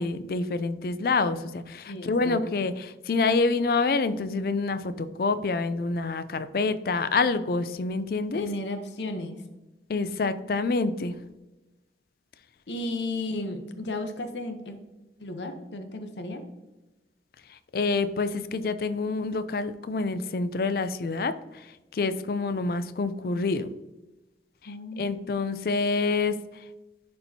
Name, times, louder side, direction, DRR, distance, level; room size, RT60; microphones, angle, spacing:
voice 1, 0.0-8.5 9.9-11.2 17.5-23.7 24.6-26.6, left 3 dB, 55° left, 12 dB, 0.4 m, -27 dB
voice 2, 1.9-2.4 8.3-9.4 12.7-14.8 15.2-16.4 24.7-25.2, left 2 dB, 80° left, 6 dB, 0.8 m, -34 dB
11.0 x 4.3 x 2.8 m, 1.1 s
head